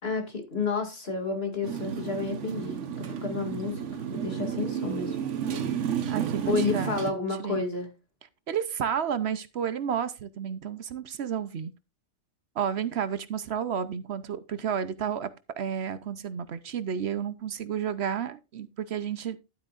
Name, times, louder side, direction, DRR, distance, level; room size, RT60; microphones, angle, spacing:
voice 1, 0.0-3.8 4.1-5.1 6.5-7.9, left 4 dB, 60° left, 2.6 m, -31 dB
Motorcycle, 1.6-7.1, right 8 dB, 85° right, 1.3 m, -32 dB
voice 2, 6.1-6.9 7.4-7.6 8.5-11.7 12.6-15.3 15.6-19.4, right 8 dB, 65° right, 1.0 m, -31 dB
12.0 x 8.5 x 2.5 m
omnidirectional pair, 1.2 m